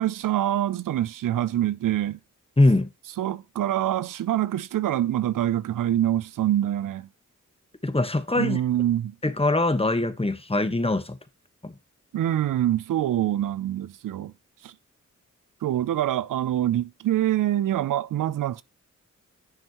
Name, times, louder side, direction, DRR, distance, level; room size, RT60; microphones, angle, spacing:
voice 1, 0.0-2.2 3.2-7.1 8.3-9.2 12.1-14.3 14.6-14.7 15.6-18.6, right 12 dB, 90° right, 0.5 m, -25 dB
voice 2, 2.6-2.9 7.8-8.6 9.2-11.2 11.6-11.7, left 2 dB, 20° left, 1.2 m, -22 dB
10.5 x 6.3 x 3.0 m
cardioid pair, 50°, 32 cm